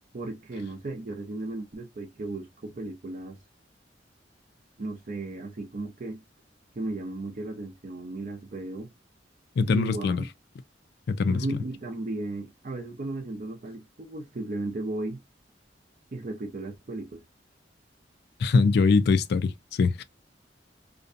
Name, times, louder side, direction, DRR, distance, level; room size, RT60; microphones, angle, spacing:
voice 1, 0.1-3.4 4.8-6.2 6.8-8.9 9.6-10.2 11.3-15.2 16.1-17.2, right 2 dB, 45° right, 0.5 m, -35 dB
voice 2, 9.6-10.2 11.1-11.4 18.4-20.0, left 4 dB, 65° left, 0.3 m, -23 dB
2.5 x 2.2 x 2.5 m
head